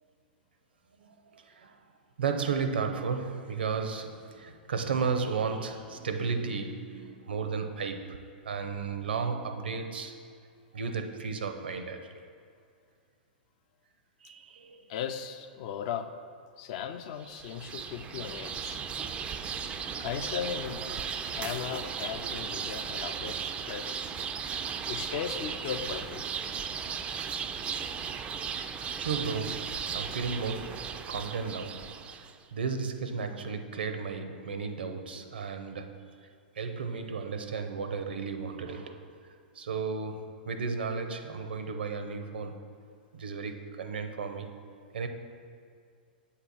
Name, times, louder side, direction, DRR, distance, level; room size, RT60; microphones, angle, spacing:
voice 1, 1.0-1.8 2.2-10.2 10.7-12.3 14.2-14.9 29.0-32.0 32.5-36.0 36.5-42.6 43.1-44.6 44.9-45.1, right 5 dB, 70° right, 7 dB, 0.6 m, -34 dB
voice 2, 14.9-16.1 16.6-18.8 20.0-21.0 21.3-24.0 24.9-26.2, left 8 dB, 50° left, 8 dB, 0.4 m, -37 dB
sound 1, 17.2-32.3, right 7 dB, 20° right, 0.3 m, -36 dB
7.9 x 2.8 x 6.1 m, 2.3 s
figure-of-eight pair, 105°, 6 cm